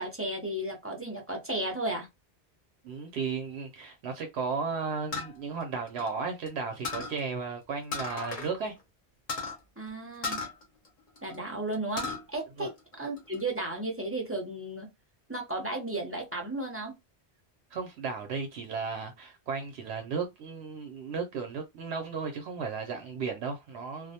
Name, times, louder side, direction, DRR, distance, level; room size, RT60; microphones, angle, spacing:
voice 1, 0.0-2.1 9.8-10.4 11.2-12.7 13.0-14.9 15.3-17.0, right 2 dB, 15° right, 0.6 m, -34 dB
voice 2, 2.8-8.8 12.6-12.7 17.7-24.1, right 5 dB, 75° right, 0.8 m, -34 dB
sound 1, 5.1-6.5 6.8-7.2 7.9-8.5 8.8-8.9 9.3-9.6 10.2-11.4 11.7-12.2 12.7-13.4, left 3 dB, 50° left, 0.9 m, -35 dB
2.4 x 2.0 x 2.7 m
omnidirectional pair, 1.1 m